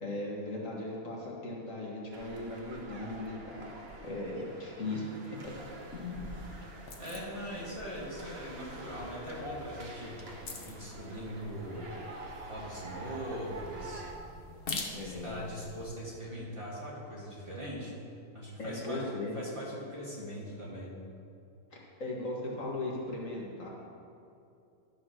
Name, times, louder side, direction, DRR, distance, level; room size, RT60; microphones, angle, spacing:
voice 1, 0.0-3.7 4.0-5.1 5.4-5.5 5.9-6.3 14.9-15.5 18.6-19.4 22.0-23.7, left 2 dB, 60° left, -3 dB, 1.9 m, -38 dB
sound 1, 2.1-14.1, right 2 dB, 50° right, 1.2 m, -47 dB
sound 2, 5.4-15.9, left 3 dB, 45° left, 1.0 m, -46 dB
voice 2, 7.0-10.2 10.7-12.0 12.3-14.0 15.0-17.9 18.3-19.0 19.3-20.9, equal, 20° right, -6 dB, 2.1 m, -41 dB
12.0 x 4.9 x 6.2 m, 2.6 s
omnidirectional pair, 1.5 m